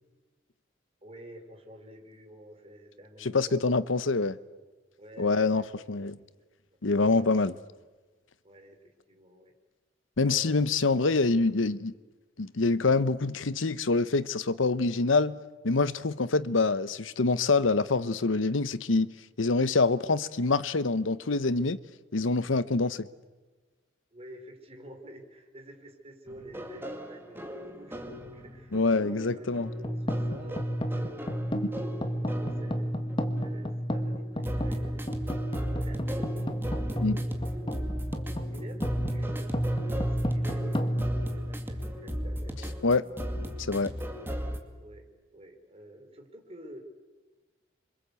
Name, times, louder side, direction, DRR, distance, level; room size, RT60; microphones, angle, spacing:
voice 1, 1.0-3.6 5.0-5.9 8.4-9.5 10.2-11.6 24.1-31.5 32.2-32.9 33.4-35.4 35.8-37.8 38.5-39.5 39.8-42.8 44.8-46.8, equal, 30° right, 4.1 m, -49 dB
voice 2, 3.2-4.4 5.2-5.6 5.9-6.1 6.8-7.6 10.2-11.9 12.4-15.4 15.6-19.1 19.4-21.8 22.1-23.1 28.7-29.7 31.5-31.7 37.0-37.2 42.8-43.0 43.7-43.9, left 3 dB, 85° left, 0.9 m, -25 dB
sound 1, 26.3-44.6, equal, 10° right, 2.4 m, -37 dB
sound 2, 29.6-42.1, equal, 25° left, 1.7 m, -31 dB
27.5 x 25.0 x 8.3 m
head